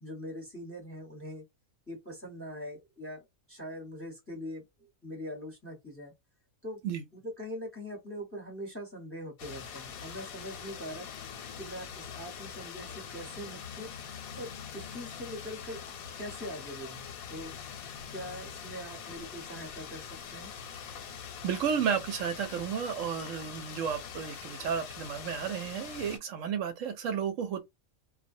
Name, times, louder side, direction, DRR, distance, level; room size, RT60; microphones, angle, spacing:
voice 1, 0.0-1.4 1.9-3.2 3.5-6.1 6.6-6.8 7.1-11.1 11.6-13.9 14.4-15.8 16.2-17.0 17.3-17.5 18.1-20.5, equal, 10° left, 0.8 m, -42 dB
sound 1, 9.4-26.2, left 7 dB, 85° left, 1.1 m, -43 dB
voice 2, 21.4-27.6, right 7 dB, 70° right, 0.9 m, -32 dB
2.3 x 2.0 x 2.6 m
omnidirectional pair, 1.5 m